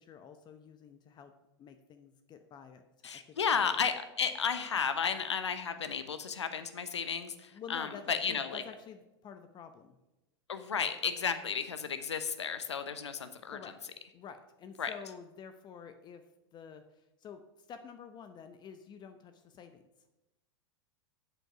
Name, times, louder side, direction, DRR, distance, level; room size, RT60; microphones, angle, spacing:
voice 1, 0.0-1.3 1.6-2.8 3.1-3.7 7.5-10.0 13.5-13.8 14.1-16.2 16.5-16.8 17.2-17.4 17.7-19.8, left 7 dB, 30° left, 8 dB, 0.7 m, -49 dB
voice 2, 3.0-8.6 10.5-13.6 14.8-14.9, left 6 dB, 85° left, 10 dB, 0.8 m, -33 dB
8.2 x 7.3 x 5.6 m, 0.96 s
hypercardioid pair, 95°, 14 cm